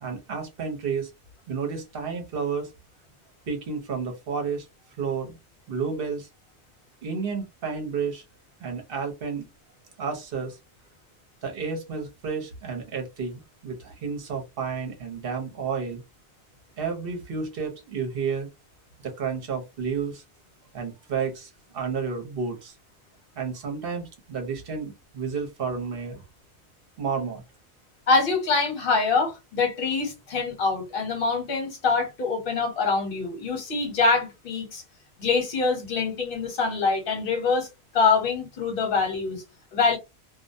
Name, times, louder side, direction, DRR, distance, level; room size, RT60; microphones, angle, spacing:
voice 1, 0.0-1.1 1.5-2.7 3.5-4.7 5.0-5.4 5.7-6.3 7.0-8.2 8.6-9.4 10.0-10.6 11.4-16.0 16.8-18.5 19.0-20.2 20.7-22.7 23.4-26.2 27.0-27.4, right 5 dB, 55° right, 0.9 m, -31 dB
voice 2, 28.1-34.8 35.2-37.7 37.9-39.4 39.7-40.0, left 4 dB, 55° left, 1.1 m, -24 dB
2.3 x 2.1 x 2.5 m
omnidirectional pair, 1.2 m